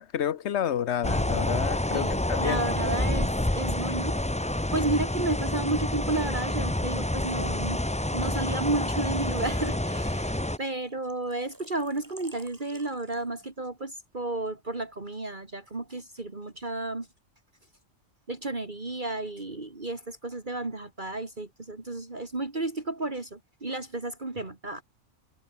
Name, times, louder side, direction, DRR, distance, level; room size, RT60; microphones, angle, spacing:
voice 1, 0.0-2.6, left 9 dB, 70° left, 1.0 m, -30 dB
sound 1, 1.0-10.6, left 1 dB, 5° left, 0.7 m, -28 dB
voice 2, 1.9-4.2 4.7-7.8 8.1-17.1 18.3-24.8, right 2 dB, 40° right, 2.8 m, -32 dB
Engine / Trickle dribble / Fill (with liquid), 8.9-13.5, right 1 dB, 15° right, 3.4 m, -53 dB
omnidirectional pair, 1.2 m